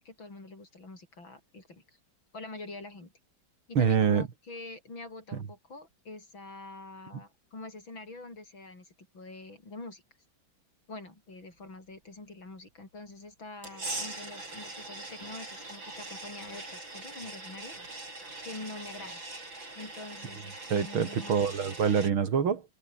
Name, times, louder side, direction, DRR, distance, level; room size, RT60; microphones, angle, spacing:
voice 1, 0.0-1.8 2.3-3.1 3.7-10.0 10.9-17.7 18.4-19.2 19.7-21.6, left 2 dB, 70° left, 7.4 m, -45 dB
voice 2, 3.7-4.3 5.3-5.4 20.7-22.6, right 6 dB, 85° right, 3.1 m, -25 dB
sound 1, 13.6-22.1, right 2 dB, 70° right, 8.6 m, -42 dB
omnidirectional pair, 2.2 m